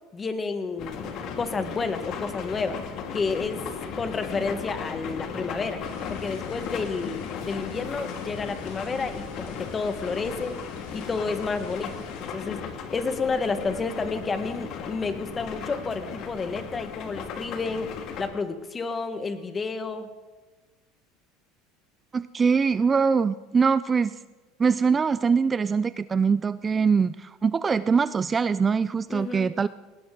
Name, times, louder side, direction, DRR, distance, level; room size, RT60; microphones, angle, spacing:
voice 1, 0.1-2.8 3.1-3.6 4.0-5.8 6.1-10.6 10.9-11.9 12.3-12.6 12.9-17.9 18.2-20.1 29.1-29.5, left 4 dB, 25° left, 9 dB, 1.6 m, -30 dB
sound 1, 0.8-18.3, left 6 dB, 55° left, 2.1 m, -36 dB
sound 2, 5.8-12.3, left 5 dB, 70° left, 4.7 m, -46 dB
voice 2, 22.1-24.2 24.6-29.7, right 5 dB, 25° right, 16 dB, 0.4 m, -23 dB
19.0 x 17.5 x 3.9 m, 1.2 s
supercardioid pair, 110°, 0 cm